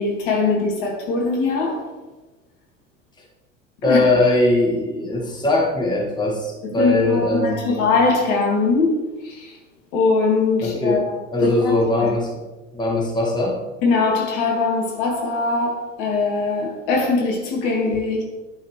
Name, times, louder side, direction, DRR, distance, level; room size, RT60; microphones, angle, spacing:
voice 1, 0.0-1.9 3.8-4.1 6.8-9.0 9.2-9.6 9.9-12.1 13.8-18.2, left 3 dB, 50° left, 0 dB, 2.0 m, -21 dB
voice 2, 3.8-7.9 10.6-11.0 11.3-12.4 12.7-13.6, left 2 dB, 10° left, -2 dB, 1.8 m, -20 dB
11.5 x 5.6 x 3.2 m, 1.2 s
figure-of-eight pair, 75°, 40 cm